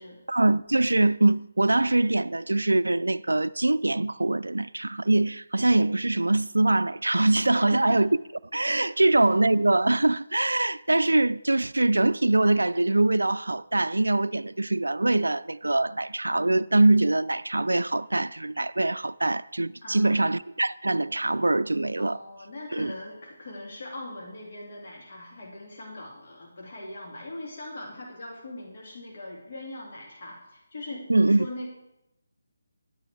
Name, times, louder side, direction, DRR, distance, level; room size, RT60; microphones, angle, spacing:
voice 1, 0.3-8.2 8.5-22.2 22.7-22.9 31.1-31.5, right 2 dB, 85° right, 0.3 m, -23 dB
voice 2, 7.6-8.0 8.9-9.1 19.8-20.1 22.0-31.7, left 2 dB, 50° left, 2.3 m, -41 dB
11.0 x 9.1 x 4.6 m
figure-of-eight pair, 155°, 0 cm